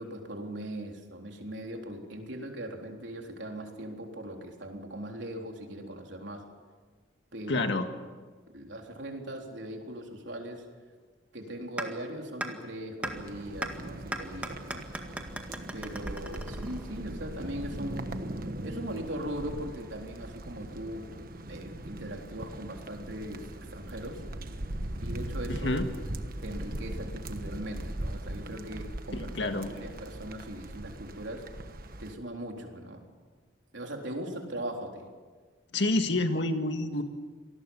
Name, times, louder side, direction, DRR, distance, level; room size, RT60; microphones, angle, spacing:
voice 1, 0.0-6.4 7.3-7.6 8.5-10.7 11.3-14.8 15.7-18.1 18.6-21.1 21.4-24.2 25.0-25.8 26.4-31.5 32.0-33.0 33.7-35.1, right 1 dB, 70° right, 2 dB, 3.9 m, -39 dB
voice 2, 7.5-7.9 25.5-25.8 29.1-29.7 35.7-37.0, left 2 dB, 65° left, 6 dB, 1.9 m, -28 dB
sound 1, 11.8-11.9 12.4-12.5 13.0-13.1 13.6-13.7 14.1-17.0, right 1 dB, 5° right, 1.9 m, -36 dB
sound 2, 13.0-32.2, right 1 dB, 50° right, 1.3 m, -39 dB
26.5 x 19.5 x 7.3 m, 1.4 s
head